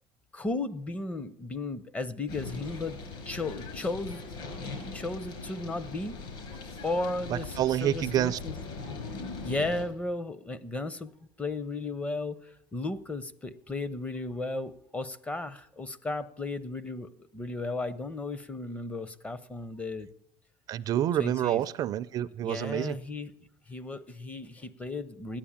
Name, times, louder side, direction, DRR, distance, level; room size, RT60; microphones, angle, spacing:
voice 1, 0.3-4.2 4.8-6.2 6.8-8.5 9.0-9.1 9.4-11.1 11.4-20.1 21.2-21.6 22.4-23.3 23.7-25.4, left 2 dB, 15° left, 0.7 m, -35 dB
sound 1, 2.3-9.9, left 4 dB, 55° left, 4.5 m, -40 dB
voice 2, 7.6-8.4 20.7-22.9, right 11 dB, 40° right, 0.5 m, -28 dB
14.5 x 10.0 x 8.7 m
cardioid pair, 145°, 10 cm